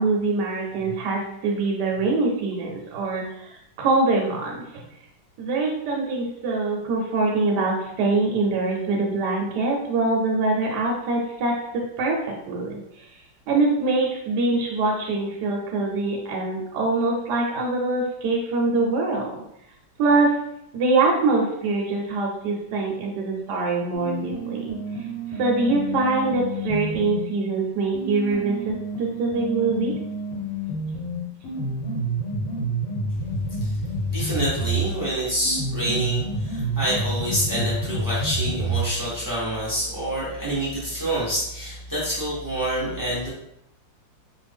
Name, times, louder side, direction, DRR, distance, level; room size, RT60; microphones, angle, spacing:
voice 1, 0.0-4.8 5.4-12.2 12.5-13.1 13.5-19.4 20.0-20.4 20.7-24.7 25.3-30.0, right 3 dB, 70° right, -1 dB, 1.1 m, -24 dB
sound 1, 23.9-27.2 27.9-34.9 35.4-38.9, right 2 dB, 85° left, 1.5 m, -29 dB
voice 2, 34.1-43.3, right 1 dB, 30° right, -8 dB, 0.4 m, -27 dB
3.2 x 2.1 x 3.4 m, 0.76 s
omnidirectional pair, 2.0 m